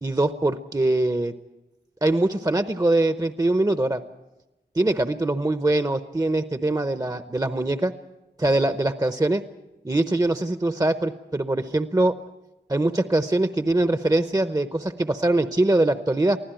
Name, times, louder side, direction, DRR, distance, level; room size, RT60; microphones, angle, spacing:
voice 1, 0.0-1.3 2.0-4.0 4.7-7.9 8.4-9.4 9.8-12.1 12.7-16.4, right 2 dB, 20° right, 10 dB, 0.8 m, -22 dB
24.5 x 15.5 x 9.0 m, 1.0 s
wide cardioid pair, 55°, 18 cm